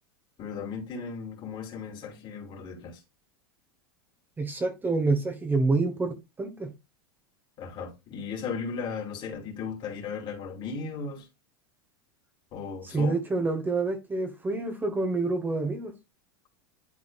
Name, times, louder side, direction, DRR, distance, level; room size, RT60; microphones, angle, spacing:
voice 1, 0.4-3.0 7.6-11.2 12.5-13.1, left 5 dB, 40° left, 2.6 m, -36 dB
voice 2, 4.4-6.7 12.8-15.9, right 3 dB, 15° right, 1.2 m, -27 dB
11.0 x 3.9 x 2.4 m
hypercardioid pair, 110°, 12 cm